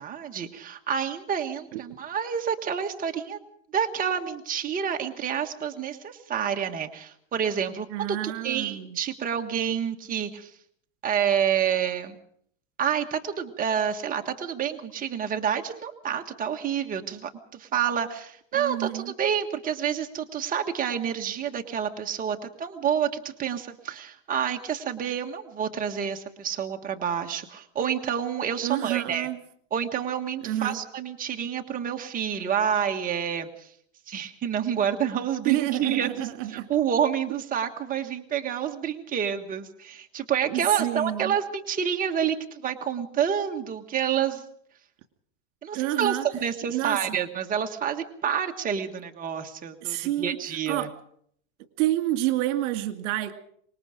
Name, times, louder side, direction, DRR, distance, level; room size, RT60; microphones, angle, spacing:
voice 1, 0.0-3.4 3.7-10.5 11.0-12.2 12.8-29.3 29.7-33.7 34.1-44.4 45.6-50.9, right 8 dB, 20° right, 4 dB, 1.6 m, -28 dB
voice 2, 7.9-9.0 18.5-19.1 28.6-29.4 30.4-30.8 35.4-36.7 40.5-41.4 45.7-46.3 46.7-47.2 49.8-50.4 50.7-50.9 51.8-53.3, right 15 dB, 65° right, 7 dB, 2.4 m, -28 dB
25.5 x 21.0 x 5.1 m, 0.64 s
supercardioid pair, 135°, 39 cm